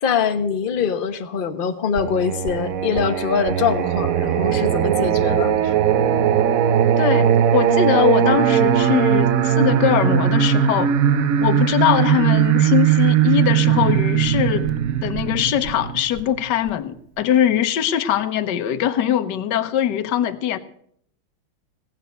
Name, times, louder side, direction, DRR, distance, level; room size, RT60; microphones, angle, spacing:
voice 1, 0.0-5.7, left 7 dB, 35° left, 8 dB, 0.9 m, -23 dB
Singing, 2.0-16.7, right 9 dB, 70° right, 0.8 m, -19 dB
voice 2, 7.0-10.9 11.4-14.7 15.0-20.6, left 10 dB, 60° left, 9 dB, 1.5 m, -21 dB
18.0 x 9.1 x 6.7 m, 0.66 s
omnidirectional pair, 2.3 m